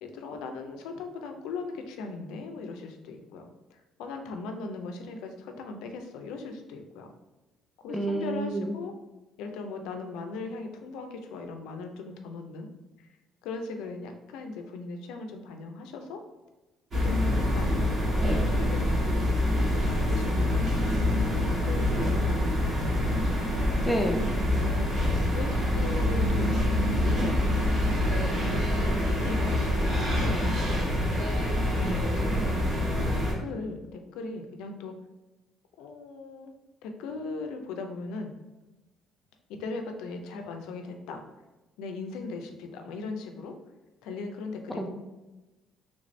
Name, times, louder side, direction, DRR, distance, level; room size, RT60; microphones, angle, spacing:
voice 1, 0.0-7.1 7.8-9.0 9.4-12.7 13.0-13.1 13.4-16.2 16.9-18.0 18.5-19.3 19.7-21.0 21.3-23.3 24.6-24.9 25.2-27.1 28.2-30.9 31.5-32.5 33.0-35.0 35.8-36.5 36.8-38.3 39.6-41.2 41.8-43.6 44.0-44.9, left 3 dB, 85° left, 5 dB, 0.4 m, -39 dB
voice 2, 7.9-8.7 23.8-24.2 44.8-44.9, right 1 dB, 5° left, 3 dB, 0.4 m, -28 dB
sound 1, 16.9-33.3, left 1 dB, 45° right, 1.4 m, -26 dB
3.3 x 2.5 x 3.1 m, 1.1 s
cardioid pair, 90°, 0 cm